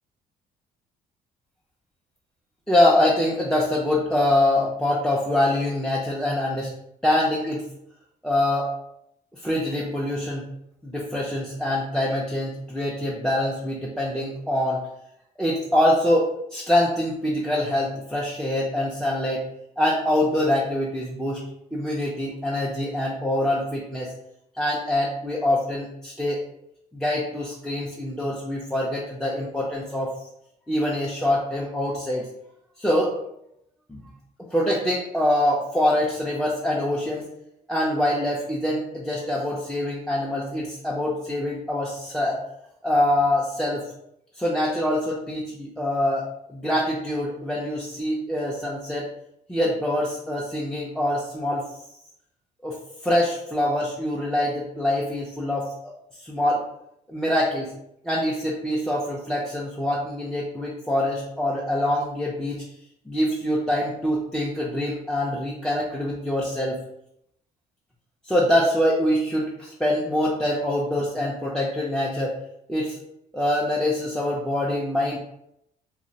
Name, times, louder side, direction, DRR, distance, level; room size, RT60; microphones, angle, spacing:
voice 1, 2.7-6.7 7.0-7.6 8.2-8.7 9.3-10.5 10.8-14.8 15.4-19.4 19.8-21.4 21.7-24.1 24.6-26.4 26.9-30.1 30.7-32.3 32.8-33.1 33.9-34.0 34.5-37.3 37.7-42.4 42.8-43.8 44.4-49.1 49.5-51.7 52.6-52.8 53.0-55.7 56.2-56.6 57.1-57.7 58.0-62.6 63.1-66.8 68.2-72.4 72.7-73.0 73.3-75.2, left 1 dB, 5° left, -4 dB, 0.3 m, -24 dB
2.9 x 2.0 x 2.6 m, 0.77 s
cardioid pair, 125°, 16 cm